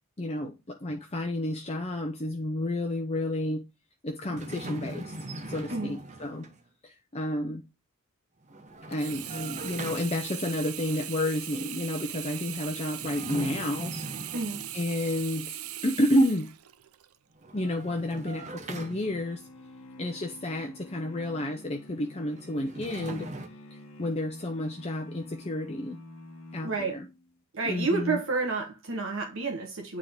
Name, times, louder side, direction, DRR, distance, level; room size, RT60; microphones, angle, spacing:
voice 1, 0.2-3.6 4.0-5.1 5.5-6.4 6.8-7.6 8.9-13.9 14.7-16.5 17.5-19.4 20.0-23.3 24.0-26.0 26.5-27.1 27.6-28.2, left 1 dB, 30° left, 0.7 m, -30 dB
sound 1, 4.3-6.6 8.4-10.4 12.9-15.0 17.3-19.5 22.4-23.5, right 1 dB, 30° right, 0.9 m, -40 dB
Sink (filling or washing), 8.9-17.2 17.7-17.8, right 12 dB, 75° right, 0.5 m, -39 dB
sound 2, 19.0-27.3, left 1 dB, 60° left, 1.0 m, -48 dB
voice 2, 26.6-27.0 27.5-30.0, right 3 dB, 60° right, 1.2 m, -30 dB
9.3 x 3.7 x 3.6 m
head